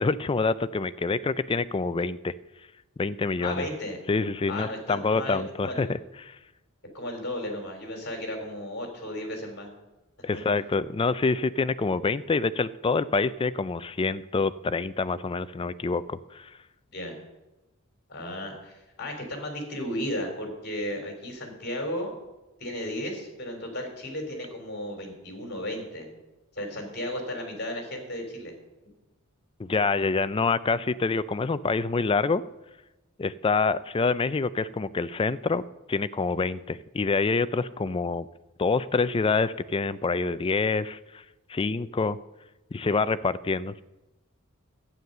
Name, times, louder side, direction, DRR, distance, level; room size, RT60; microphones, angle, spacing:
voice 1, 0.0-2.3 3.0-3.7 4.1-6.0 6.3-6.4 10.2-16.5 29.6-32.4 33.2-35.6 35.9-38.3 38.6-41.2 41.5-42.2 42.7-43.7, left 4 dB, 25° left, 15 dB, 0.4 m, -26 dB
voice 2, 3.4-4.0 4.5-5.9 6.9-9.7 10.3-10.4 16.9-17.2 18.1-22.1 22.6-26.1 26.6-28.5, left 1 dB, 50° left, 3 dB, 3.6 m, -34 dB
12.0 x 9.5 x 6.7 m, 1.0 s
head